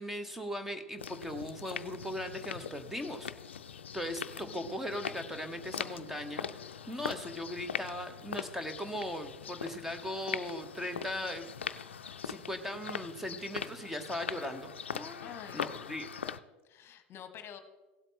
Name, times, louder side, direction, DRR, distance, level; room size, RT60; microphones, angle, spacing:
voice 1, 0.0-3.3 3.9-11.5 12.2-16.1, left 1 dB, 5° right, 8 dB, 1.0 m, -39 dB
sound 1, 1.0-16.4, left 7 dB, 80° left, 0.4 m, -41 dB
voice 2, 4.3-4.7 15.2-16.0 16.6-17.6, left 8 dB, 40° left, 9 dB, 1.1 m, -49 dB
17.0 x 8.0 x 3.8 m, 1.2 s
figure-of-eight pair, 80°, 6 cm